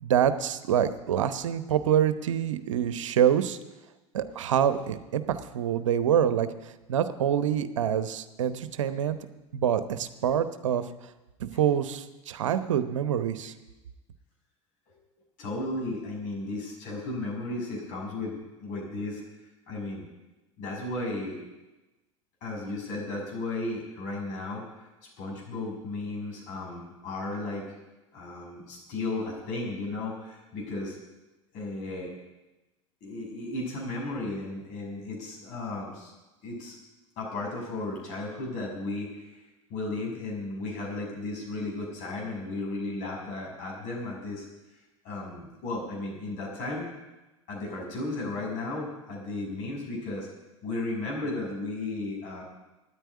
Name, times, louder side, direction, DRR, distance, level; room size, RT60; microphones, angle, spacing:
voice 1, 0.0-3.6 4.1-9.2 9.5-10.8 11.4-13.5, right 9 dB, 80° right, 11 dB, 0.9 m, -26 dB
voice 2, 15.4-19.2 19.7-20.1 20.6-21.4 22.4-24.9 25.2-27.7 28.1-31.0 31.5-32.1 33.0-36.1 36.4-36.8 37.2-39.4 39.7-44.5 45.0-46.9 47.5-50.3 50.6-52.4, left 2 dB, 55° left, -1 dB, 6.4 m, -34 dB
9.9 x 9.2 x 9.6 m, 1.1 s
hypercardioid pair, 85°, 16 cm